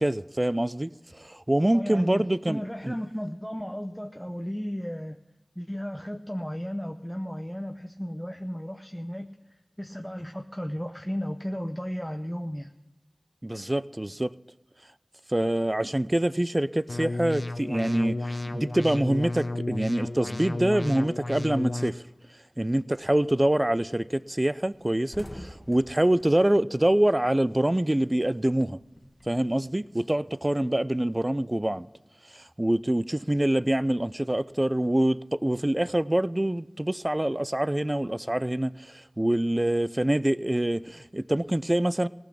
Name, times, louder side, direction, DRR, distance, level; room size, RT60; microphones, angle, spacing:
voice 1, 0.0-3.0 13.4-14.3 15.3-22.0 22.6-28.8 29.3-31.9 32.3-42.1, right 1 dB, 30° right, 0.5 m, -25 dB
voice 2, 1.7-5.2 5.6-9.3 9.8-12.7, equal, 5° left, 0.8 m, -34 dB
sound 1, 16.9-21.9, left 2 dB, 70° left, 0.8 m, -33 dB
sound 2, 23.0-23.3 23.7-23.9 24.1-24.3 24.6-27.6 27.9-29.5, left 1 dB, 30° left, 1.7 m, -47 dB
17.5 x 6.2 x 10.0 m
wide cardioid pair, 40°, 0 cm